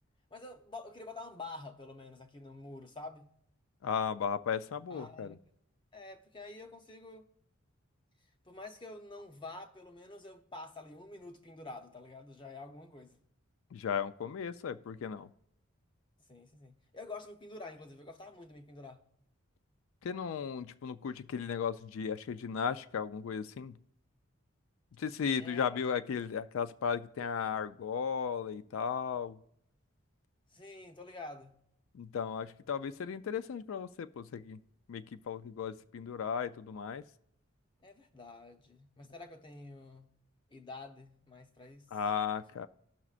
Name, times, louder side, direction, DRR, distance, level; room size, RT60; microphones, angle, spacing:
voice 1, 0.3-3.3 4.9-5.4 5.9-7.3 8.4-13.2 16.3-19.0 25.4-25.8 30.5-31.6 37.8-40.1 40.5-41.9, left 2 dB, 25° left, 0.6 m, -48 dB
voice 2, 3.8-5.4 13.7-15.3 20.0-23.7 25.0-29.4 31.9-34.6 34.9-37.0 41.9-42.7, left 7 dB, 70° left, 0.3 m, -35 dB
18.0 x 6.0 x 2.4 m
head